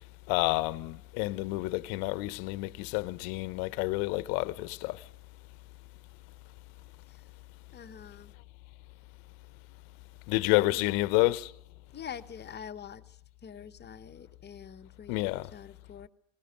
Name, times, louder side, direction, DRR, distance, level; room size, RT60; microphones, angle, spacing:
voice 1, 0.3-5.0 10.3-11.5 15.1-15.5, left 20 dB, 60° left, 0.9 m, -29 dB
voice 2, 7.7-8.3 10.5-11.0 11.9-13.2 13.4-16.1, left 8 dB, 25° left, 1.0 m, -45 dB
20.5 x 18.0 x 8.9 m
hypercardioid pair, 90°, 40 cm